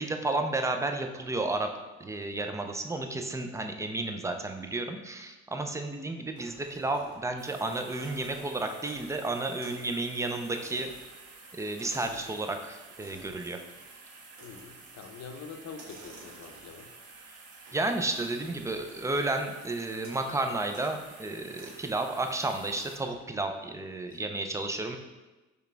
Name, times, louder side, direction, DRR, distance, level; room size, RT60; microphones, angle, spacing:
voice 1, 0.0-1.7 2.0-10.9 11.5-13.6 17.7-25.0, right 2 dB, 10° right, 5 dB, 0.4 m, -32 dB
sound 1, 6.4-7.4 7.8-9.2 9.6-9.9 10.1-12.3 12.9-13.4 14.3-14.9 15.6-16.9 17.7-19.4 20.0-20.3 20.7-21.0 21.5-21.8 22.7-23.2, right 2 dB, 65° right, 1.3 m, -52 dB
sound 2, 7.4-23.0, right 3 dB, 45° right, 0.9 m, -51 dB
voice 2, 14.4-16.9 24.1-24.2, left 5 dB, 50° left, 5 dB, 0.7 m, -45 dB
4.7 x 3.3 x 3.3 m, 1.1 s
supercardioid pair, 85°, 33 cm